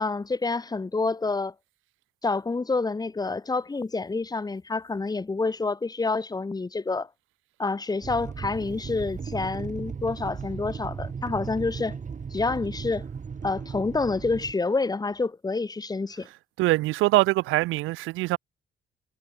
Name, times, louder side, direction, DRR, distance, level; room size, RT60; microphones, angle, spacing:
voice 1, 0.0-1.5 2.2-7.1 7.6-12.0 12.3-13.1 13.4-16.3, left 3 dB, 20° left, 0.9 m, -28 dB
sound 1, 8.0-14.5, right 6 dB, 40° right, 2.3 m, -36 dB
voice 2, 16.6-18.4, right 19 dB, 90° right, 0.4 m, -23 dB
cardioid pair, 90°, 20 cm